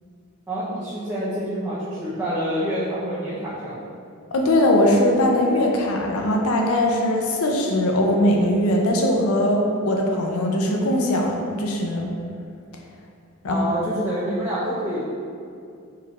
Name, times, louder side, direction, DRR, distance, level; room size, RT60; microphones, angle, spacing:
voice 1, 0.5-3.8 13.5-15.0, equal, 15° right, -11 dB, 0.6 m, -27 dB
voice 2, 4.3-12.1 13.4-13.6, left 1 dB, 75° left, 1 dB, 0.5 m, -20 dB
4.4 x 3.8 x 2.4 m, 2.4 s
head